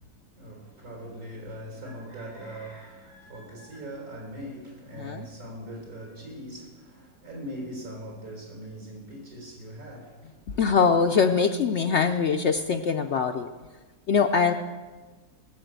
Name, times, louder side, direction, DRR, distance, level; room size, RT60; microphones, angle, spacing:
voice 1, 0.0-10.4, right 1 dB, 70° right, 4.5 m, -41 dB
voice 2, 10.6-13.5 14.1-14.5, left 5 dB, 60° left, 0.8 m, -23 dB
18.5 x 7.1 x 8.1 m
omnidirectional pair, 1.6 m